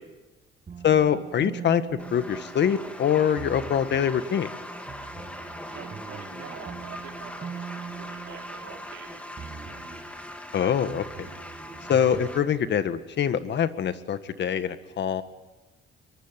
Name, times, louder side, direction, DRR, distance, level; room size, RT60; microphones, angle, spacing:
sound 1, 0.7-2.9 3.4-4.2 4.9-9.0 9.4-10.2 10.9-12.7, right 6 dB, 40° right, 1.8 m, -42 dB
voice 1, 0.8-1.8 2.1-4.5 10.5-11.3 11.9-15.2, left 8 dB, 60° left, 11 dB, 1.6 m, -24 dB
sound 2, 2.0-12.4, left 1 dB, 5° left, 3.1 m, -41 dB
voice 2, 5.4-9.4, right 8 dB, 85° right, 2 dB, 4.4 m, -46 dB
23.0 x 23.0 x 9.3 m, 1.1 s
cardioid pair, 90°, 20 cm